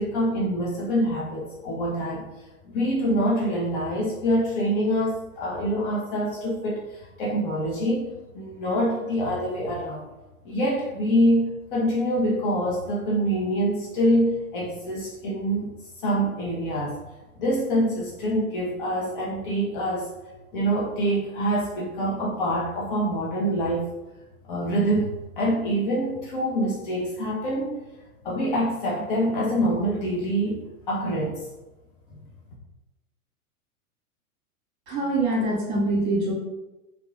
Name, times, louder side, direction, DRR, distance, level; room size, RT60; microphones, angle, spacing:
voice 1, 0.0-8.1 8.3-10.1 10.4-11.4 11.7-15.7 16.0-17.0 17.4-20.1 20.5-23.9 24.5-25.1 25.4-27.8 28.2-30.6 30.9-31.5, equal, 35° left, -4 dB, 0.5 m, -25 dB
voice 2, 34.9-36.3, right 2 dB, 35° right, -5 dB, 1.2 m, -24 dB
2.8 x 2.2 x 2.3 m, 1.0 s
figure-of-eight pair, 100°, 45 cm